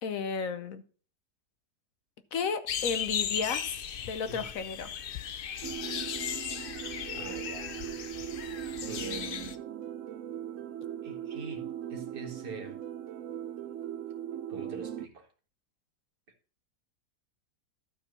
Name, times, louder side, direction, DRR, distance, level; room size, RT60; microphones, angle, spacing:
voice 1, 0.0-0.8 2.3-3.8 4.1-4.9, left 5 dB, 60° left, 1.1 m, -33 dB
sound 1, 2.7-9.6, left 8 dB, 85° left, 0.5 m, -36 dB
sound 2, 5.6-15.1, right 10 dB, 65° right, 0.8 m, -39 dB
voice 2, 7.1-7.8 8.9-9.6 11.0-12.8 14.5-15.3, right 3 dB, 35° right, 1.7 m, -43 dB
12.5 x 4.5 x 5.2 m
omnidirectional pair, 1.7 m